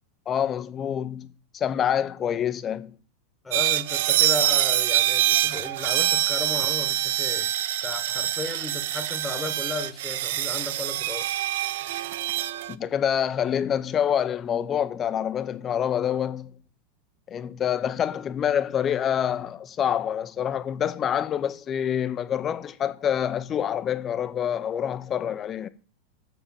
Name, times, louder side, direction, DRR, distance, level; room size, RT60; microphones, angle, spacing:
voice 1, 0.3-1.3 1.5-2.9 12.7-16.5 17.3-25.7, left 9 dB, 30° left, 0.8 m, -26 dB
voice 2, 3.4-7.5 7.8-11.3, left 3 dB, 10° left, 1.5 m, -34 dB
sound 1, 3.5-12.7, right 13 dB, 65° right, 0.5 m, -25 dB
7.4 x 6.6 x 7.2 m
hypercardioid pair, 95°, 0 cm